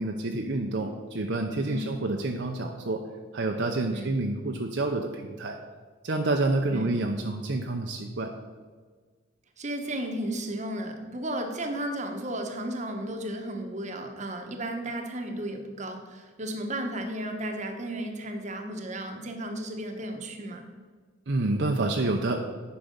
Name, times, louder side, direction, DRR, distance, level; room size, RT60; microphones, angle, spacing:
voice 1, 0.0-3.0 3.3-5.6 6.0-8.3 21.3-22.4, right 2 dB, 55° right, 2 dB, 0.7 m, -28 dB
voice 2, 1.6-2.0 3.9-4.2 6.7-7.1 9.6-20.6, right 1 dB, 35° right, 5 dB, 1.0 m, -34 dB
9.3 x 5.9 x 5.1 m, 1.5 s
head